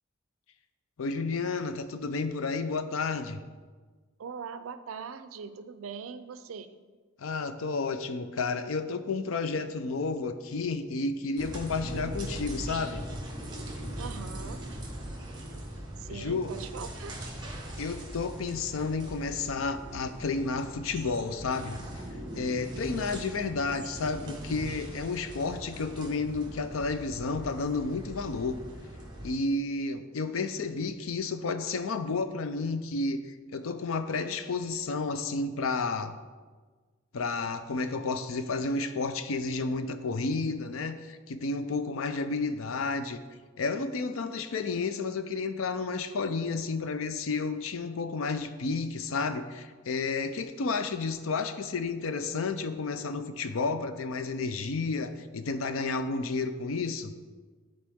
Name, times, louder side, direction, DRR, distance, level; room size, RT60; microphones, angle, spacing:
voice 1, 1.0-3.4 7.2-13.1 16.1-16.5 17.8-21.8 22.3-28.6 29.2-36.2 37.1-43.2 43.6-57.1, left 4 dB, 85° left, 11 dB, 0.5 m, -31 dB
voice 2, 4.2-6.8 11.8-12.5 14.0-14.6 16.0-17.1, right 6 dB, 80° right, 12 dB, 0.4 m, -41 dB
sound 1, 11.4-29.3, right 1 dB, 20° right, 1.3 m, -40 dB
10.5 x 4.3 x 3.5 m, 1.4 s
head